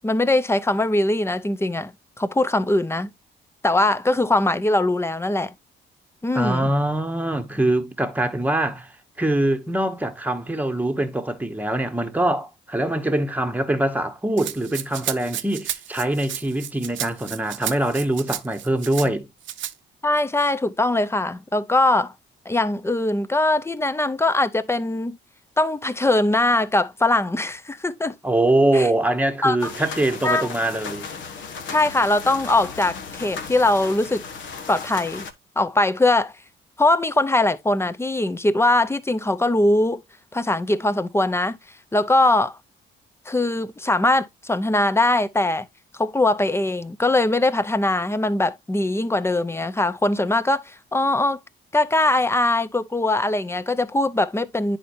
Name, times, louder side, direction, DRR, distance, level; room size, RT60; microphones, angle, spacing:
voice 1, 0.0-3.1 3.6-5.5 6.2-6.7 20.0-22.1 22.5-25.2 25.6-28.1 28.7-28.9 29.4-29.7 30.2-30.5 31.7-34.2 34.7-35.3 35.6-36.3 36.8-40.0 40.3-41.6 41.9-42.6 43.3-45.7 46.0-51.4 51.7-54.8, left 2 dB, 10° left, 0.6 m, -21 dB
voice 2, 6.3-19.3 28.2-31.1, right 1 dB, 10° right, 1.1 m, -23 dB
Rattle (instrument), 14.4-19.1 19.4-19.7, right 11 dB, 70° right, 0.7 m, -32 dB
sound 1, 29.6-35.3, left 5 dB, 70° left, 1.1 m, -36 dB
9.9 x 4.3 x 2.6 m
cardioid pair, 90°, 20 cm